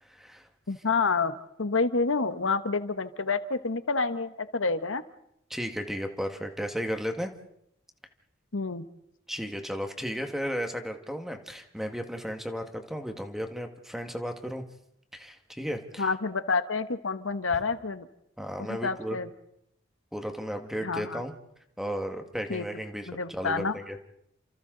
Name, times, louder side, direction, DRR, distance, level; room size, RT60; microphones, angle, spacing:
voice 1, 0.1-0.4 5.5-7.3 9.3-14.6 15.1-16.1 18.4-19.2 20.1-21.3 21.8-24.0, equal, ahead, 5 dB, 1.8 m, -34 dB
voice 2, 0.7-5.0 8.5-8.9 16.0-18.1 18.6-19.3 20.8-21.2 22.5-23.8, left 4 dB, 80° left, 11 dB, 1.2 m, -29 dB
29.5 x 27.0 x 4.0 m, 0.76 s
head